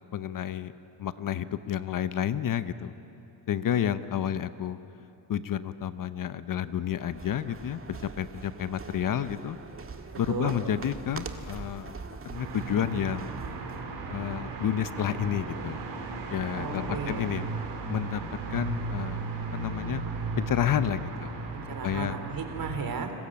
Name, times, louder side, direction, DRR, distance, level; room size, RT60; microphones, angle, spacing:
voice 1, 0.1-0.7 1.0-2.9 3.5-4.8 5.3-9.6 10.2-13.3 14.1-15.8 16.3-17.4 17.9-18.2 18.5-19.2 19.5-20.0 20.4-21.3 21.8-22.2, left 10 dB, 50° left, 13 dB, 0.9 m, -30 dB
sound 1, 6.7-13.9, right 4 dB, 30° right, 1.8 m, -43 dB
voice 2, 10.1-10.6 16.5-17.4 21.5-23.1, right 5 dB, 55° right, 6 dB, 3.5 m, -35 dB
sound 2, 12.3-22.8, right 4 dB, 85° right, 4.1 m, -36 dB
30.0 x 20.5 x 8.7 m, 2.9 s
cardioid pair, 105°, 41 cm